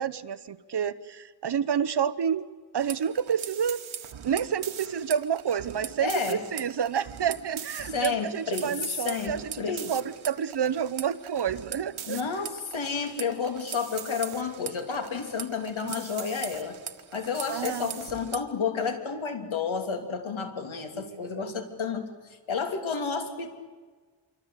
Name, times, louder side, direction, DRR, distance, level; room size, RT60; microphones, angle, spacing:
voice 1, 0.0-2.4 2.7-3.8 4.2-12.5 15.8-15.9 17.5-17.9 20.9-21.6, right 8 dB, 55° right, 14 dB, 1.0 m, -29 dB
sound 1, 2.8-18.4, right 8 dB, 85° right, 1.6 m, -41 dB
voice 2, 6.0-6.4 7.8-9.9 12.1-16.8 17.1-22.1 22.5-23.5, left 5 dB, 80° left, 5 dB, 3.3 m, -31 dB
27.0 x 24.5 x 8.4 m, 1.4 s
wide cardioid pair, 150°, 47 cm